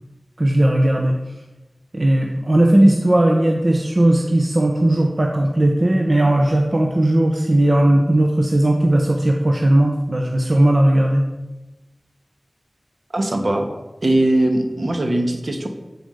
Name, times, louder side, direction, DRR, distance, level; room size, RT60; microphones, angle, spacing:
voice 1, 0.4-1.2 1.9-11.3, right 1 dB, 50° right, 1 dB, 1.0 m, -17 dB
voice 2, 13.1-13.7 14.0-15.7, right 1 dB, 65° right, 4 dB, 1.4 m, -20 dB
10.5 x 5.1 x 6.4 m, 1.1 s
wide cardioid pair, 45°, 0 cm